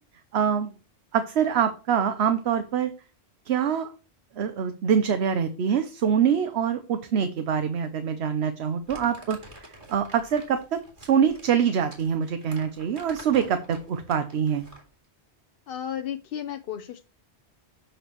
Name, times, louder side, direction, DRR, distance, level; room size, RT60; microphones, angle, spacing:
voice 1, 0.3-0.7 1.1-2.9 3.5-3.9 4.4-9.4 9.9-14.6, right 7 dB, 75° right, 9 dB, 1.0 m, -24 dB
Crumpling crinkling, 8.9-14.9, right 1 dB, 50° right, 2.5 m, -48 dB
voice 2, 15.7-17.1, left 9 dB, 60° left, 7 dB, 0.8 m, -33 dB
7.7 x 6.2 x 2.9 m, 0.36 s
omnidirectional pair, 1.1 m